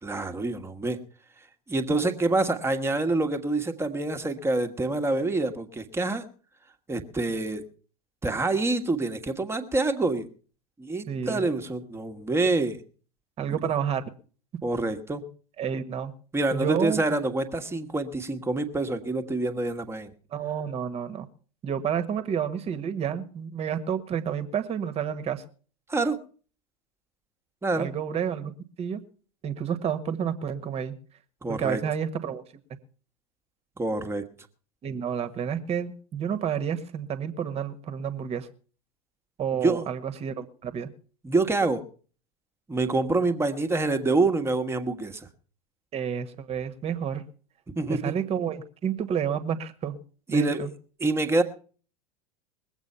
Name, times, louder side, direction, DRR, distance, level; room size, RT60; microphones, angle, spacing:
voice 1, 0.0-1.0 1.7-6.2 6.9-7.6 8.2-10.3 10.8-12.8 13.5-13.6 14.6-15.2 16.3-20.1 25.9-26.2 27.6-27.9 31.4-31.8 33.8-34.2 39.6-39.9 41.2-41.8 42.7-45.3 47.7-48.1 50.3-50.6 51.0-51.4, right 2 dB, 10° right, 7 dB, 1.5 m, -26 dB
voice 2, 11.1-11.4 13.4-14.1 15.6-16.1 16.5-17.0 20.3-21.3 21.6-25.4 27.7-28.5 28.8-29.0 29.4-30.9 31.5-32.4 34.8-38.5 39.4-40.9 45.9-47.2 47.9-50.0 50.3-50.7, right 8 dB, 30° right, 11 dB, 1.5 m, -30 dB
21.0 x 8.2 x 5.6 m, 0.42 s
figure-of-eight pair, 85°, 20 cm